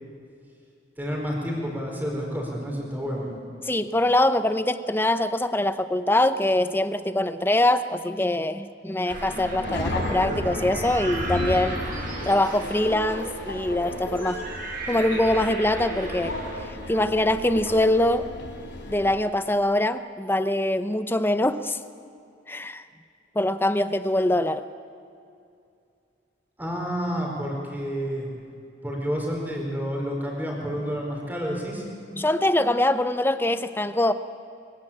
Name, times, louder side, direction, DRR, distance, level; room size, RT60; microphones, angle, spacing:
voice 1, 1.0-3.4 26.6-28.3 28.8-31.9, equal, 10° right, -1 dB, 4.5 m, -29 dB
voice 2, 3.7-11.8 12.3-14.4 14.9-16.3 16.9-18.3 18.9-21.8 22.5-22.8 23.3-24.6 32.2-34.1, left 1 dB, 10° left, 11 dB, 0.7 m, -23 dB
sound 1, 9.0-16.6, right 2 dB, 50° right, 5.4 m, -36 dB
Subway metro underground, 9.1-19.1, left 1 dB, 75° left, 4.2 m, -34 dB
23.5 x 16.5 x 8.8 m, 2.5 s
head